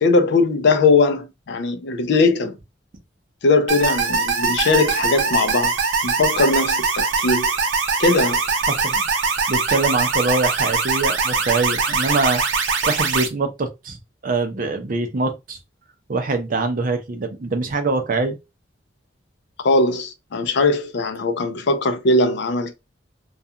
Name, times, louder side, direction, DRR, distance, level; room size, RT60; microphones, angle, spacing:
voice 1, 0.0-2.6 3.4-5.7 6.0-7.5 8.0-8.4 19.6-22.7, left 3 dB, 65° left, 0.5 m, -19 dB
sound 1, 3.7-13.3, right 5 dB, 85° right, 0.6 m, -22 dB
voice 2, 8.7-9.1 9.5-12.4 12.9-14.0 14.2-15.6 16.1-18.4, right 3 dB, 50° right, 0.5 m, -23 dB
2.4 x 2.3 x 2.7 m
head